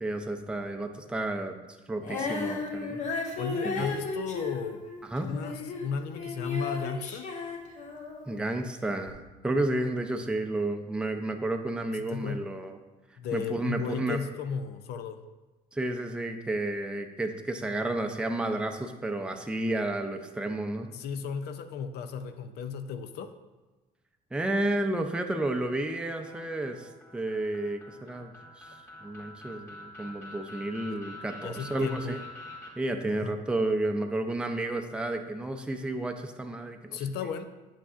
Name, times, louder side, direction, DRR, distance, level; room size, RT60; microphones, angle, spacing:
voice 1, 0.0-1.6 1.9-3.0 3.6-3.9 5.0-5.3 8.3-12.8 13.3-14.2 15.7-20.9 24.3-32.2 32.8-37.0, right 2 dB, 5° right, 5 dB, 0.5 m, -31 dB
Female singing, 2.0-8.4 9.1-9.2, left 4 dB, 45° left, 1.0 m, -34 dB
voice 2, 3.4-4.8 5.2-7.3 11.9-12.5 13.2-15.2 20.9-23.3 30.9-31.0 31.4-32.1 33.2-33.4 36.9-37.4, left 6 dB, 75° left, 9 dB, 0.5 m, -35 dB
sound 1, 26.2-32.7, left 2 dB, 15° left, 1.7 m, -46 dB
8.1 x 5.9 x 2.5 m, 1.2 s
cardioid pair, 110°, 17 cm